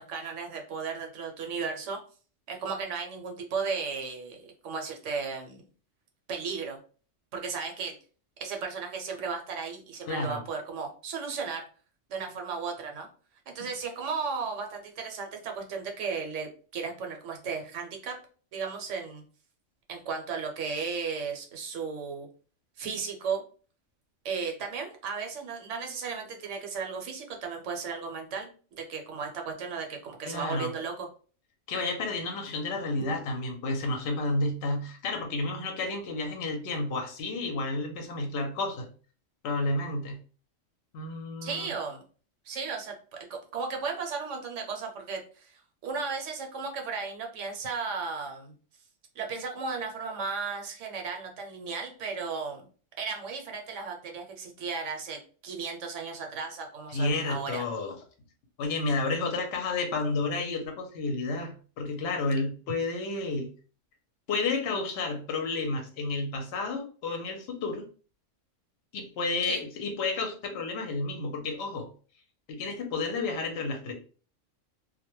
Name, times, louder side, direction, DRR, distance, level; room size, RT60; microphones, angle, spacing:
voice 1, 0.0-2.0 2.5-5.6 6.3-6.8 7.3-7.9 8.4-11.6 12.1-13.1 13.5-18.2 18.5-19.2 19.9-22.3 22.8-23.4 24.2-31.1 41.4-42.0 42.4-48.5 49.2-52.7 53.0-57.7 69.4-69.6, right 5 dB, 75° right, 3 dB, 0.9 m, -35 dB
voice 2, 10.1-10.4 30.3-30.7 31.7-38.9 39.4-40.2 40.9-41.7 56.9-58.0 58.6-63.5 64.3-67.8 68.9-71.9 72.5-73.9, left 3 dB, 60° left, 3 dB, 0.8 m, -31 dB
2.2 x 2.1 x 2.9 m, 0.39 s
omnidirectional pair, 1.3 m